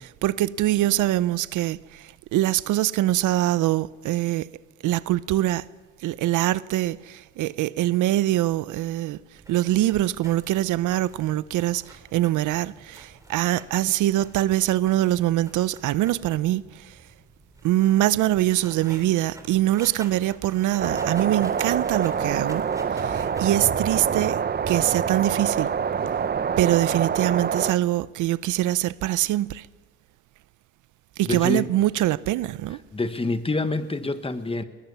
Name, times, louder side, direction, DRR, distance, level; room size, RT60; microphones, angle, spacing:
voice 1, 0.0-4.5 4.8-5.6 6.0-9.2 9.5-16.8 17.6-22.6 22.9-24.4 24.7-25.7 26.6-29.7 31.2-32.8, right 14 dB, 80° right, 0.6 m, -23 dB
sound 1, 9.3-23.4, right 1 dB, 10° right, 3.6 m, -48 dB
sound 2, 20.8-27.7, right 7 dB, 35° right, 0.7 m, -26 dB
voice 2, 31.2-31.7 32.9-34.6, left 2 dB, 20° left, 1.4 m, -26 dB
20.5 x 20.0 x 6.9 m
cardioid pair, 90°, 30 cm